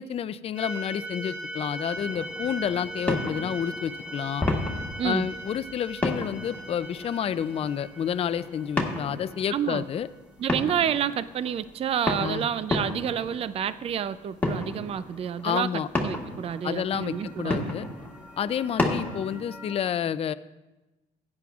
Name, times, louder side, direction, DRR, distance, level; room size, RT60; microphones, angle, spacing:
voice 1, 0.0-4.4 5.0-10.1 12.2-12.5 15.4-15.9 16.6-17.9 18.4-20.3, left 8 dB, 35° left, 13 dB, 0.4 m, -29 dB
sound 1, 0.6-10.1 16.2-19.8, right 1 dB, 5° right, 1.6 m, -40 dB
sound 2, 1.9-19.4, left 2 dB, 10° left, 1.7 m, -33 dB
voice 2, 5.0-5.3 9.5-9.9 10.4-17.8, right 9 dB, 35° right, 15 dB, 0.4 m, -29 dB
16.0 x 9.6 x 2.4 m, 1.0 s
cardioid pair, 110°, 17 cm